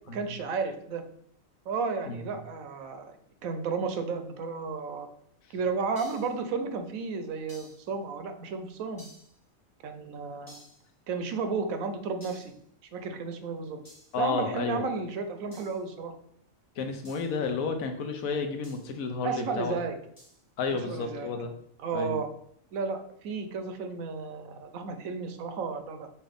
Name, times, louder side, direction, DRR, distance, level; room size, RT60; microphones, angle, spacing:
voice 1, 0.1-1.0 1.7-3.1 3.4-5.1 5.5-9.0 9.8-10.6 11.1-12.5 12.9-13.8 14.2-16.1 19.2-20.0 20.7-21.3 21.8-22.3 22.7-26.1, right 5 dB, 85° right, 7 dB, 1.1 m, -33 dB
sound 1, 6.0-6.4 7.5-7.9 9.0-9.4 10.5-10.9 12.2-12.6 13.9-14.2 15.5-15.9 17.0-17.4 18.6-18.9 20.2-20.4, left 1 dB, 15° left, 1.1 m, -53 dB
voice 2, 14.1-14.8 16.8-19.8 20.6-21.5 21.9-22.2, left 4 dB, 85° left, 6 dB, 1.1 m, -31 dB
5.7 x 2.6 x 3.4 m, 0.67 s
omnidirectional pair, 1.4 m